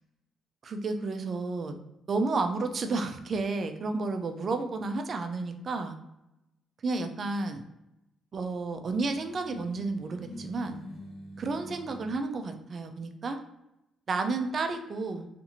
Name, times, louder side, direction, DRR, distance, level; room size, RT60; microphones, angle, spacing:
voice 1, 0.6-1.8 2.1-5.9 6.8-7.6 8.3-10.8 11.4-13.4 14.1-15.3, right 3 dB, 45° right, 6 dB, 0.4 m, -31 dB
sound 1, 9.0-12.3, left 1 dB, 60° left, 0.8 m, -45 dB
2.7 x 2.5 x 2.7 m, 0.89 s
cardioid pair, 90°, 0 cm